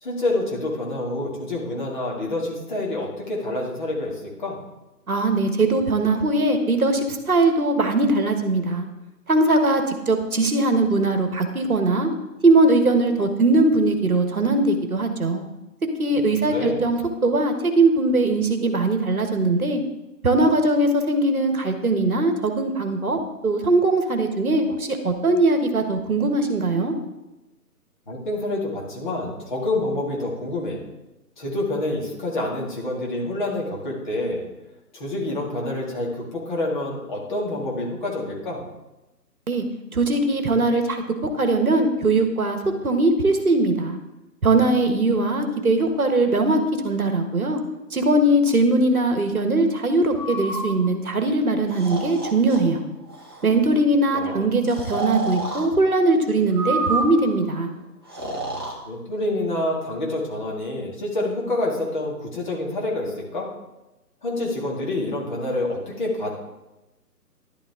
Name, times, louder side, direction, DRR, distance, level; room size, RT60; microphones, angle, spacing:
voice 1, 0.0-4.6 16.1-16.9 28.1-30.8 31.4-34.4 34.9-38.6 54.1-54.5 58.8-63.5 64.2-66.3, left 2 dB, 30° left, -3 dB, 2.5 m, -27 dB
voice 2, 5.1-8.9 9.3-12.1 12.4-15.4 16.0-19.8 20.2-26.9 39.5-39.6 39.9-42.6 42.8-44.0 44.4-47.6 47.9-52.8 53.4-57.7, right 2 dB, 60° right, 6 dB, 1.5 m, -20 dB
Breathing, 50.1-50.7 51.7-52.6 53.1-53.5 54.7-55.7 56.5-57.4 58.1-58.7, right 2 dB, 15° right, 0.9 m, -29 dB
11.5 x 11.5 x 3.7 m, 1.0 s
figure-of-eight pair, 150°, 49 cm